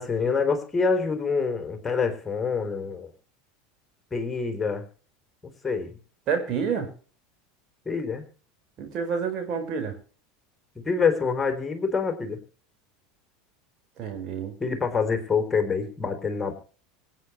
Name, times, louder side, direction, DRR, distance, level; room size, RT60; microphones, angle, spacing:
voice 1, 0.0-3.1 4.1-4.8 5.4-5.9 7.9-8.2 10.8-12.4 14.6-16.5, left 5 dB, 15° left, 5 dB, 3.9 m, -26 dB
voice 2, 6.3-6.9 8.8-10.0 14.0-14.5, right 6 dB, 45° right, 5 dB, 5.1 m, -28 dB
25.0 x 9.4 x 3.2 m, 0.40 s
figure-of-eight pair, 75°, 0 cm